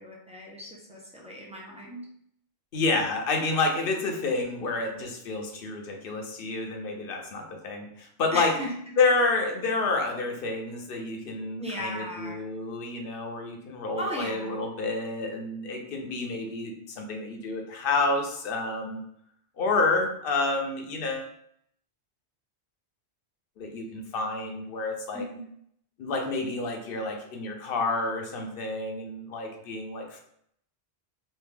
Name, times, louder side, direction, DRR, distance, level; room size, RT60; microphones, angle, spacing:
voice 1, 0.0-2.0 8.3-8.7 11.6-12.4 14.0-14.6 25.1-25.5, equal, 10° right, -3 dB, 0.5 m, -36 dB
voice 2, 2.7-8.5 9.0-19.0 19.6-21.3 23.6-25.3 26.0-30.2, left 3 dB, 60° left, 3 dB, 0.8 m, -29 dB
3.2 x 2.5 x 3.4 m, 0.70 s
omnidirectional pair, 1.1 m